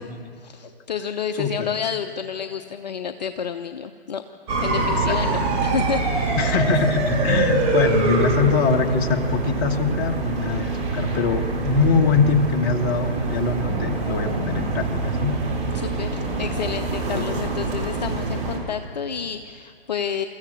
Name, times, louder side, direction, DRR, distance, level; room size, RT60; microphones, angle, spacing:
voice 1, 0.4-4.2 4.6-6.4 15.7-20.3, left 7 dB, 45° left, 9 dB, 0.8 m, -30 dB
sound 1, 4.5-18.6, right 3 dB, 20° right, 3.8 m, -25 dB
voice 2, 4.8-5.1 6.4-15.4 17.1-17.3, left 4 dB, 20° left, 5 dB, 1.3 m, -23 dB
25.5 x 14.5 x 7.4 m, 2.3 s
figure-of-eight pair, 130°, 31 cm